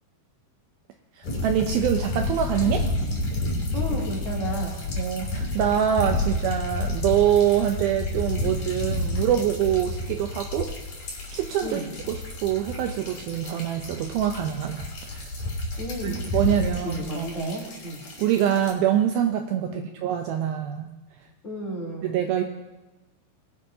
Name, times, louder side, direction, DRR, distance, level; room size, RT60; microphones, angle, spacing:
sound 1, 1.2-18.7, left 2 dB, 55° left, 4.2 m, -30 dB
voice 1, 1.2-2.9 5.0-10.7 11.3-15.3 16.0-17.3 18.2-20.9 22.0-22.4, right 10 dB, 80° right, 4 dB, 2.3 m, -25 dB
voice 2, 3.7-4.7 6.2-6.4 11.6-11.9 15.8-16.3 16.8-18.0 19.7-19.9 21.4-22.2, equal, 20° left, -4 dB, 3.0 m, -33 dB
20.5 x 11.0 x 2.7 m, 1.1 s
omnidirectional pair, 4.7 m